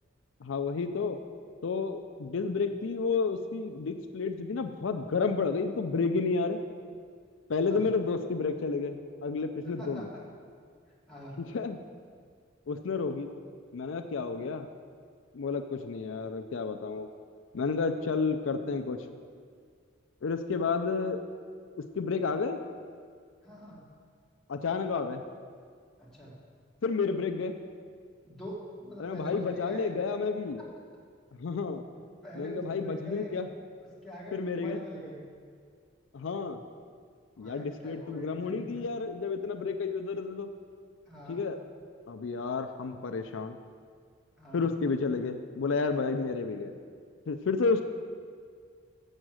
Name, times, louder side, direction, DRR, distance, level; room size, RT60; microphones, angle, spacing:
voice 1, 0.4-1.2 1.6-6.6 7.5-10.1 11.4-11.8 12.7-13.3 13.7-14.7 15.3-17.1 17.5-19.0 20.2-21.2 21.8-22.6 24.5-25.2 26.8-27.6 29.0-30.6 31.4-31.8 32.3-33.5 34.3-34.8 36.1-36.6 37.4-40.5 41.3-41.6 42.1-43.6 44.5-46.8 47.3-47.8, left 4 dB, 75° left, 7 dB, 0.4 m, -31 dB
voice 2, 23.4-23.8 26.0-26.3 28.2-29.9 32.2-33.3 34.0-35.2 37.4-38.9 41.1-41.4 44.4-44.6, equal, ahead, -8 dB, 2.2 m, -43 dB
7.2 x 6.4 x 7.6 m, 2.1 s
head